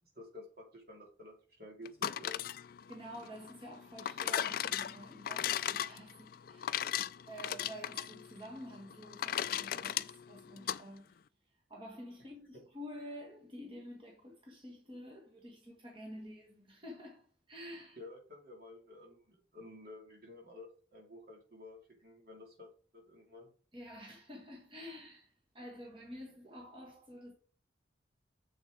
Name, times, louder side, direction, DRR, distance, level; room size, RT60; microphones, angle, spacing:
voice 1, 0.0-2.5 12.5-12.6 18.0-23.5, left 2 dB, 55° right, 2.7 m, -52 dB
sound 1, 1.9-10.8, left 10 dB, 50° left, 0.3 m, -37 dB
voice 2, 2.9-6.9 7.3-11.2 11.5-18.0 23.7-27.3, equal, 25° right, 1.6 m, -49 dB
7.3 x 6.8 x 3.9 m
head